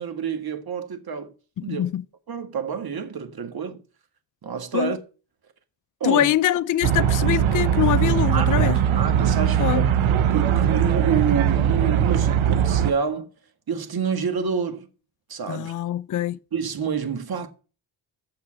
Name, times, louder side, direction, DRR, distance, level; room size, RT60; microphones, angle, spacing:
voice 1, 0.0-1.3 1.6-1.8 2.3-3.8 4.4-5.0 6.0-6.3 8.3-9.9 10.3-13.3 13.7-14.9 15.3-15.7 16.5-17.5, right 6 dB, 50° right, 1.7 m, -28 dB
voice 2, 1.6-2.0 4.7-4.9 6.0-8.8 9.6-9.9 15.5-16.4, left 12 dB, 45° left, 0.5 m, -24 dB
sound 1, 6.8-12.9, right 9 dB, 85° right, 0.8 m, -20 dB
7.1 x 6.4 x 7.5 m
cardioid pair, 75°, 46 cm